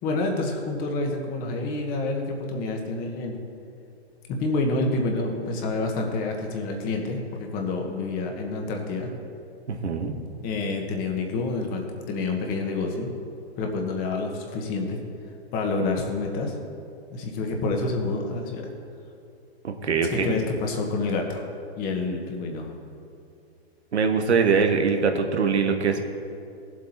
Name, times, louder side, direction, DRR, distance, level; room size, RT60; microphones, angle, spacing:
voice 1, 0.0-3.4 4.3-9.1 10.4-13.1 13.6-15.0 15.5-16.5 17.1-18.7 20.1-21.5 21.7-22.7, left 3 dB, 25° left, 2 dB, 1.5 m, -28 dB
voice 2, 9.8-10.1 19.6-20.3 23.9-26.0, right 5 dB, 85° right, 5 dB, 1.5 m, -22 dB
16.5 x 7.6 x 4.3 m, 2.5 s
hypercardioid pair, 140°, 33 cm